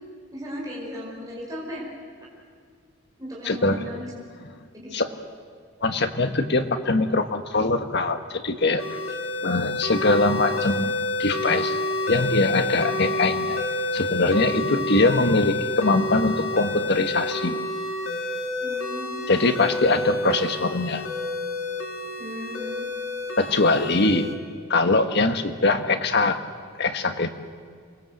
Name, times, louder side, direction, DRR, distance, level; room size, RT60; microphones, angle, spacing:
voice 1, 0.3-1.9 3.2-4.1 4.7-4.9 14.5-14.8 18.6-19.4 22.2-22.9, left 1 dB, 15° right, -5 dB, 5.2 m, -36 dB
voice 2, 3.4-3.8 4.9-5.1 5.8-8.9 9.4-11.8 12.1-13.6 13.9-17.6 19.3-21.0 23.4-24.3 24.7-26.4 26.8-27.3, left 3 dB, 55° left, 7 dB, 1.5 m, -22 dB
sound 1, 8.8-24.3, left 2 dB, 75° left, 2.9 m, -29 dB
28.0 x 21.5 x 8.0 m, 2.1 s
head